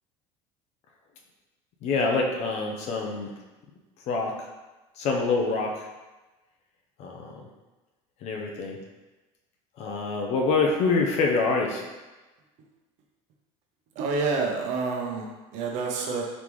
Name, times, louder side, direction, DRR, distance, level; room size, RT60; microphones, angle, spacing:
voice 1, 1.8-3.3 4.1-4.5 5.0-5.9 7.0-7.4 8.2-8.8 9.8-11.8, left 4 dB, 55° left, 0 dB, 0.7 m, -26 dB
voice 2, 13.9-16.2, right 4 dB, 60° right, 0 dB, 0.8 m, -28 dB
4.1 x 3.5 x 3.1 m, 1.1 s
cardioid pair, 135°, 14 cm